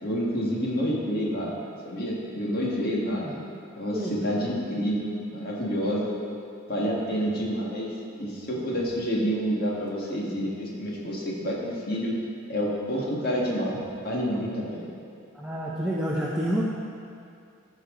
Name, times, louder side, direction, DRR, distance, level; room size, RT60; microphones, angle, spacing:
voice 1, 0.0-3.2 3.8-6.1 6.7-7.9 8.2-12.1 12.5-13.8 14.0-14.9, equal, 45° left, -5 dB, 1.9 m, -28 dB
voice 2, 3.0-3.6 3.9-4.4 15.3-16.6, equal, 5° right, -6 dB, 0.7 m, -30 dB
15.0 x 6.2 x 3.9 m, 2.4 s
head